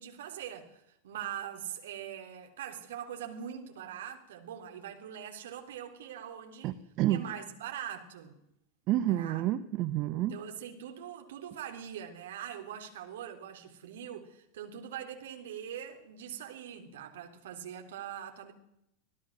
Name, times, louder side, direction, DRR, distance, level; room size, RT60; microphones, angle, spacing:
voice 1, 0.0-6.7 7.1-8.4 9.0-9.4 10.2-18.5, right 9 dB, 60° right, 3.6 m, -42 dB
voice 2, 6.6-7.2 8.9-10.3, right 14 dB, 40° right, 1.0 m, -29 dB
26.0 x 17.5 x 6.4 m
figure-of-eight pair, 85°, 0 cm